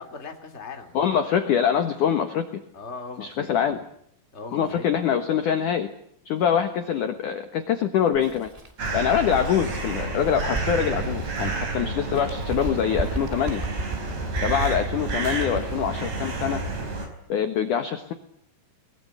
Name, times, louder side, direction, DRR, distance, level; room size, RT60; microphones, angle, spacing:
voice 1, 0.0-1.2 2.7-3.7 4.3-5.0 14.4-14.7, left 4 dB, 20° left, 4 dB, 2.3 m, -40 dB
voice 2, 0.9-2.6 3.2-3.8 4.5-5.9 6.3-8.5 8.9-13.6 14.4-16.6 17.3-18.1, left 8 dB, 70° left, 8 dB, 2.0 m, -24 dB
Bird, 8.1-11.7 12.1-15.9, right 2 dB, 10° right, 1.7 m, -35 dB
sound 1, 8.8-17.1, right 3 dB, 35° right, 5.3 m, -30 dB
23.0 x 21.0 x 9.5 m, 0.67 s
omnidirectional pair, 5.7 m